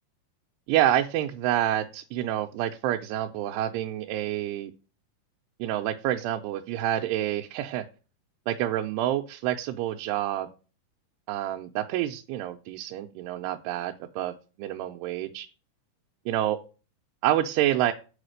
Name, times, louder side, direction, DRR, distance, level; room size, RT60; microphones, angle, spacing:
voice 1, 0.7-4.7 5.6-7.8 8.5-10.5 11.3-15.5 16.3-16.6 17.2-17.9, right 12 dB, 90° right, 3 dB, 2.7 m, -28 dB
6.8 x 4.9 x 6.5 m, 0.34 s
omnidirectional pair, 4.7 m